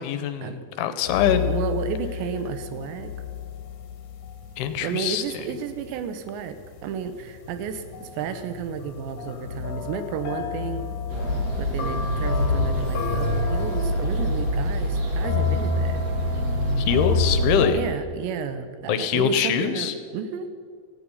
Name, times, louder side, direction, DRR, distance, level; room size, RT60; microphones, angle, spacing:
voice 1, 0.0-1.5 4.6-5.2 16.8-17.8 18.9-19.9, left 8 dB, 80° left, 10 dB, 2.5 m, -23 dB
sound 1, 1.0-6.0 6.3-17.8, left 5 dB, 60° left, 2.1 m, -30 dB
voice 2, 1.3-3.1 4.8-10.9 11.6-16.0 17.7-20.5, right 7 dB, 80° right, 10 dB, 3.0 m, -32 dB
sound 2, 11.1-17.6, right 1 dB, 55° right, 1.1 m, -26 dB
17.0 x 14.5 x 5.4 m, 2.1 s
omnidirectional pair, 5.1 m